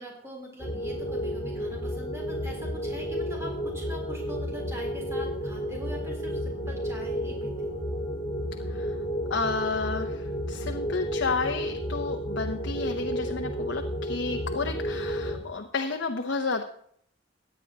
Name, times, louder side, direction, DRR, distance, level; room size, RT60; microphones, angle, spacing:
voice 1, 0.0-7.8, equal, 15° right, -1 dB, 3.6 m, -42 dB
sound 1, 0.6-15.4, equal, 20° left, 4.3 m, -32 dB
voice 2, 9.3-16.6, left 4 dB, 80° left, 4 dB, 0.8 m, -31 dB
16.5 x 9.8 x 2.9 m, 0.66 s
head